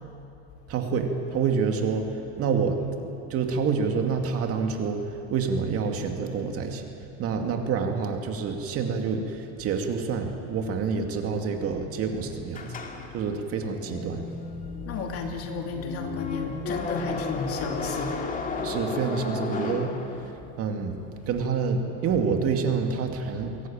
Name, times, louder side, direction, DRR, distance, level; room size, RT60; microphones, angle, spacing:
voice 1, 0.7-2.1 2.4-2.8 3.3-5.0 5.3-6.9 7.2-12.6 13.1-14.3 18.6-19.9 20.6-21.0 21.3-23.7, right 5 dB, 40° right, 4 dB, 2.4 m, -27 dB
sound 1, 12.5-20.6, left 3 dB, 25° left, 2.1 m, -34 dB
voice 2, 14.6-18.6 21.2-21.4, left 4 dB, 40° left, 3 dB, 2.7 m, -33 dB
23.0 x 18.0 x 8.9 m, 2.8 s
supercardioid pair, 145°, 35 cm